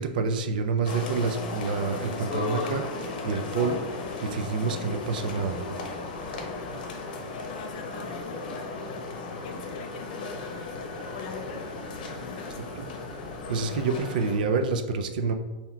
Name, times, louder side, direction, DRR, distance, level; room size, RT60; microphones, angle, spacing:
voice 1, 0.0-3.8 4.2-5.6 12.8-12.9 13.5-15.3, right 4 dB, 75° right, 7 dB, 0.4 m, -28 dB
sound 1, 0.8-14.4, left 3 dB, 80° left, 0.9 m, -35 dB
voice 2, 7.5-9.1 9.4-10.8 11.1-11.6 12.2-12.9, left 6 dB, 45° left, 4 dB, 0.5 m, -44 dB
5.6 x 2.8 x 2.3 m, 1.2 s
supercardioid pair, 165°, 5 cm